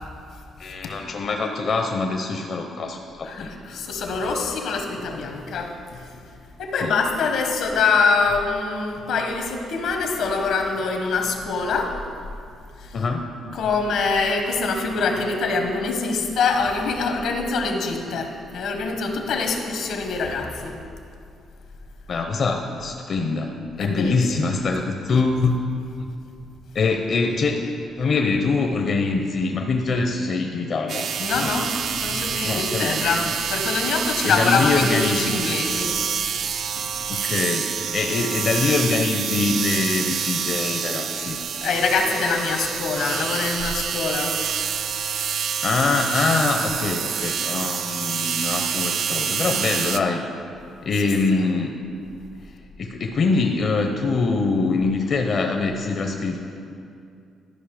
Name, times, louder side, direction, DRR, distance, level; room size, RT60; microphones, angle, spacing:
voice 1, 0.6-3.5 6.7-6.9 12.9-13.2 22.1-25.6 26.7-27.7 28.0-31.1 31.4-31.5 32.4-33.1 34.2-35.4 37.1-41.4 45.6-50.2 50.8-51.7 52.8-56.4, left 3 dB, 50° left, 3 dB, 0.7 m, -24 dB
voice 2, 3.2-6.0 6.6-12.0 12.8-12.9 13.5-20.8 23.8-24.1 31.2-36.0 36.7-36.8 41.6-44.4 51.3-51.5, left 4 dB, 80° left, 4 dB, 1.2 m, -24 dB
sound 1, 30.9-50.0, right 7 dB, 65° right, 0.4 m, -27 dB
12.5 x 5.5 x 4.9 m, 2.4 s
cardioid pair, 90°, 0 cm